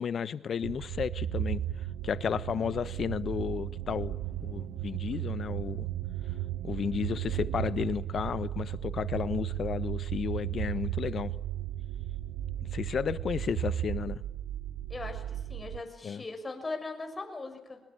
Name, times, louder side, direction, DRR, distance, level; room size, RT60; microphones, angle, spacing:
voice 1, 0.0-1.6 2.0-4.2 4.4-5.9 6.6-11.3 12.6-14.2 16.0-16.2, left 7 dB, 55° left, 1.1 m, -33 dB
sound 1, 0.6-15.8, right 12 dB, 85° right, 0.9 m, -35 dB
voice 2, 14.9-17.8, left 3 dB, 25° left, 6.2 m, -39 dB
24.0 x 20.5 x 8.7 m
cardioid pair, 90°, 0 cm